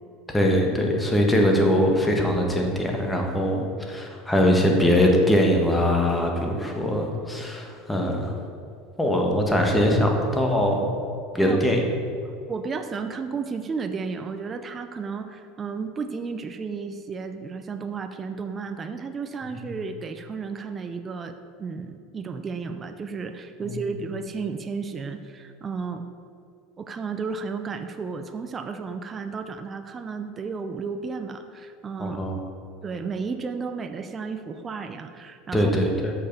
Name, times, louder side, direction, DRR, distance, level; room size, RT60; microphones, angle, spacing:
voice 1, 0.3-8.3 9.0-10.9 11.3-11.8 32.0-32.4 35.5-36.1, equal, 10° left, 1 dB, 1.5 m, -22 dB
voice 2, 12.5-26.0 26.8-32.2 32.8-35.7, right 5 dB, 30° right, 7 dB, 0.6 m, -33 dB
6.5 x 5.7 x 6.8 m, 2.4 s
hypercardioid pair, 95°, 0 cm